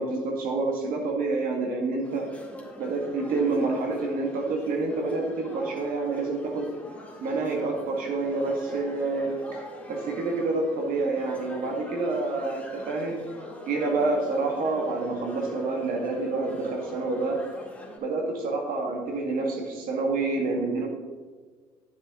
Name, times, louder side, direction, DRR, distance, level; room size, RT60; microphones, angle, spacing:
voice 1, 0.0-2.3 2.8-6.7 7.2-13.2 13.7-17.4 18.0-20.9, right 3 dB, 60° right, 1 dB, 1.7 m, -28 dB
sound 1, 2.0-18.0, left 1 dB, 10° left, 2.3 m, -44 dB
10.5 x 7.0 x 3.0 m, 1.5 s
hypercardioid pair, 65°, 16 cm